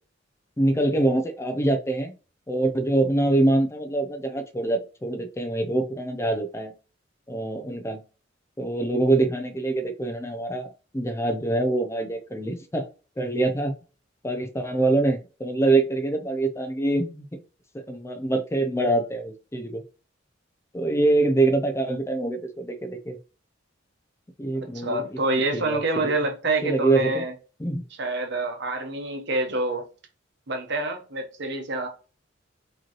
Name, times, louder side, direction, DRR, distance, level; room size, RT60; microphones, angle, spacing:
voice 1, 0.6-2.1 2.5-6.7 7.3-8.0 8.6-12.9 13.2-13.7 14.2-17.4 17.7-19.8 20.7-23.2 24.4-25.2 25.5-26.1 26.6-27.2 27.6-27.9, right 2 dB, 15° left, 0.5 m, -25 dB
voice 2, 24.6-27.3 28.0-29.9 30.5-31.9, right 2 dB, 65° right, 1.0 m, -27 dB
4.9 x 3.0 x 2.9 m
head